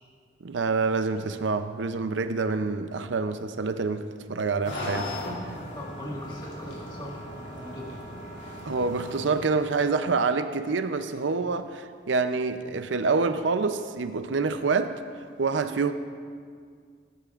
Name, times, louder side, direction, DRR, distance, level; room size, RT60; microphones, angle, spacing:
voice 1, 0.4-5.1 8.6-14.9 15.4-15.9, right 4 dB, 80° right, 10 dB, 0.6 m, -27 dB
sound 1, 4.6-9.8, left 1 dB, 80° left, 2.6 m, -38 dB
voice 2, 5.7-8.0, left 1 dB, 25° left, -4 dB, 1.7 m, -40 dB
19.0 x 10.0 x 2.5 m, 2.1 s
head